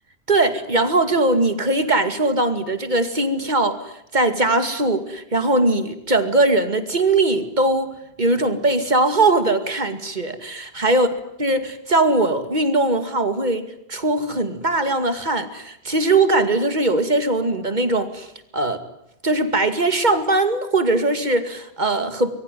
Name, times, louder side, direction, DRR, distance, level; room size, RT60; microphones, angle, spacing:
voice 1, 0.3-7.9 8.2-11.1 11.4-18.3 18.5-18.8 19.2-22.3, right 2 dB, 45° right, 9 dB, 2.5 m, -20 dB
25.5 x 22.5 x 9.2 m, 0.79 s
omnidirectional pair, 1.0 m